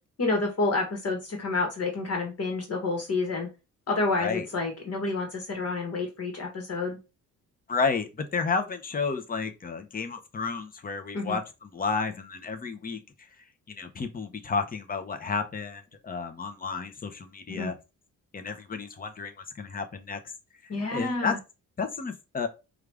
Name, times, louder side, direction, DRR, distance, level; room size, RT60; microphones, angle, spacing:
voice 1, 0.2-3.5 3.9-7.0 11.1-11.4 17.5-17.7 20.7-21.4, left 3 dB, 50° left, 1.3 m, -29 dB
voice 2, 7.7-13.3 13.7-17.7 18.3-20.2 20.6-21.4 21.8-22.5, left 4 dB, 30° left, 0.7 m, -32 dB
4.7 x 2.5 x 3.4 m
cardioid pair, 100°, 32 cm